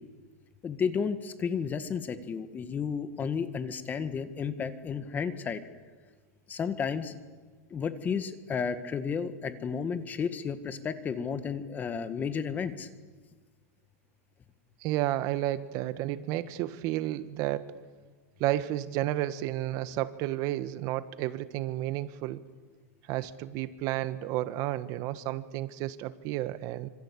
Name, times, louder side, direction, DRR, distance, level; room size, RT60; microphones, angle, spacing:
voice 1, 0.6-5.6 6.5-7.1 7.7-12.9, left 6 dB, 20° left, 11 dB, 1.8 m, -32 dB
voice 2, 14.8-17.8 18.4-22.4 23.1-26.9, right 14 dB, 45° right, 13 dB, 1.4 m, -32 dB
26.5 x 26.0 x 8.6 m, 1.4 s
supercardioid pair, 140°, 8 cm